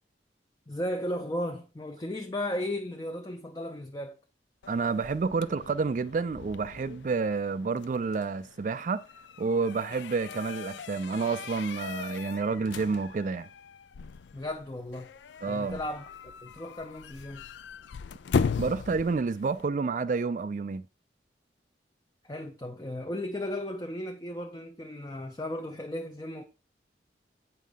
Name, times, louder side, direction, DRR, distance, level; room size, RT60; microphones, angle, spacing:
voice 1, 0.7-4.2 14.3-15.1 15.5-17.5 22.2-26.4, left 1 dB, 20° left, 0.5 m, -35 dB
sound 1, 4.6-19.7, left 5 dB, 85° left, 0.4 m, -38 dB
voice 2, 4.7-9.0 9.4-13.5 15.4-15.8 18.6-20.8, right 4 dB, 45° right, 0.3 m, -29 dB
8.4 x 5.6 x 3.5 m
head